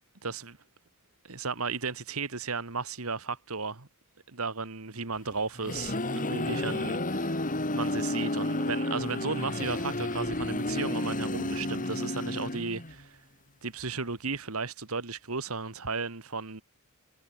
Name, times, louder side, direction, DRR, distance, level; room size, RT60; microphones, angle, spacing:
voice 1, 0.2-0.6 1.2-3.9 4.3-13.2 13.6-16.6, right 4 dB, 70° right, 2.0 m, -35 dB
sound 1, 5.3-13.0, left 1 dB, 35° left, 4.0 m, -31 dB
head